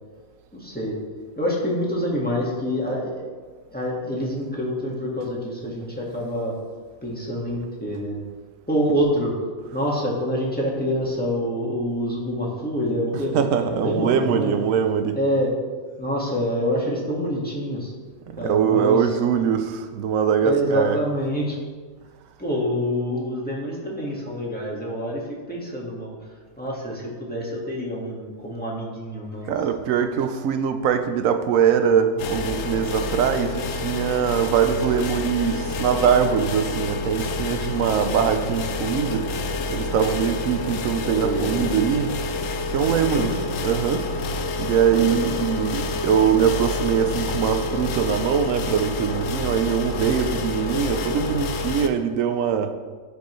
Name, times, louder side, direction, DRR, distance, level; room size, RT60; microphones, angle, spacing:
voice 1, 0.5-0.9 1.4-3.3 3.7-6.5 7.0-8.2 8.7-9.3 9.7-14.7 15.1-15.5 16.0-17.9 18.4-19.0 20.4-21.6 22.4-26.2 26.6-29.5 41.0-41.9 42.9-43.3 45.0-45.3, equal, 5° left, -4 dB, 1.6 m, -26 dB
voice 2, 13.3-15.2 18.3-21.0 29.5-39.3 39.7-42.1 42.7-43.3 43.6-52.7, right 8 dB, 90° right, 8 dB, 1.0 m, -22 dB
sound 1, 32.2-51.9, left 2 dB, 80° left, 1.0 m, -28 dB
12.5 x 5.3 x 3.1 m, 1.4 s
omnidirectional pair, 1.3 m